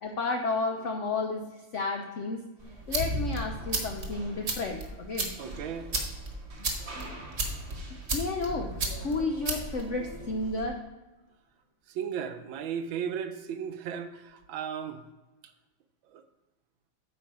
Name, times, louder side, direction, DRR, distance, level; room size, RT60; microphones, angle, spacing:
voice 1, 0.0-2.5 2.9-5.4 6.9-7.2 7.9-10.8, left 3 dB, 65° left, 3 dB, 0.7 m, -32 dB
sound 1, 2.6-10.7, right 2 dB, 35° right, 1.4 m, -35 dB
voice 2, 5.4-5.9 11.9-15.0 16.1-16.2, right 8 dB, 75° right, 9 dB, 1.5 m, -35 dB
8.6 x 6.2 x 4.9 m, 1.1 s
omnidirectional pair, 2.2 m